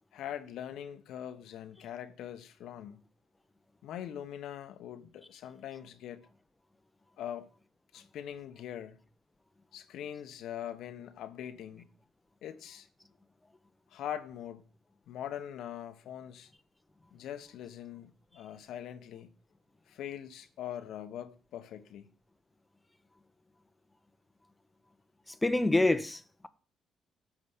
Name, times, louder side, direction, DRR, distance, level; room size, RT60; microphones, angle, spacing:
voice 1, 0.1-3.0 3.8-6.3 7.2-7.5 7.9-9.0 9.7-11.9 12.4-12.9 13.9-14.6 15.1-16.5 17.1-19.3 19.9-22.1, left 10 dB, 80° left, 1.2 m, -42 dB
voice 2, 25.4-26.5, left 2 dB, 15° left, 1.1 m, -27 dB
13.0 x 5.1 x 8.2 m
cardioid pair, 90°, 0 cm